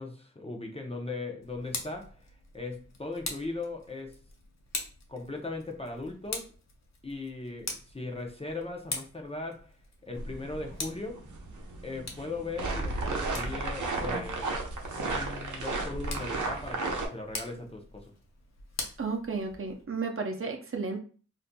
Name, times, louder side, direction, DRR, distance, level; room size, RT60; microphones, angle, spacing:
voice 1, 0.0-4.2 5.1-6.5 7.0-9.8 10.0-11.2 11.8-14.5 14.9-18.1, left 3 dB, 20° left, 2 dB, 0.6 m, -38 dB
Tick, 1.4-19.8, left 3 dB, 65° left, 0.7 m, -44 dB
sound 1, 10.1-17.1, right 3 dB, 85° right, 0.7 m, -34 dB
voice 2, 19.0-21.0, right 4 dB, 45° right, 3 dB, 0.6 m, -33 dB
4.0 x 2.6 x 2.2 m, 0.39 s
wide cardioid pair, 90°, 29 cm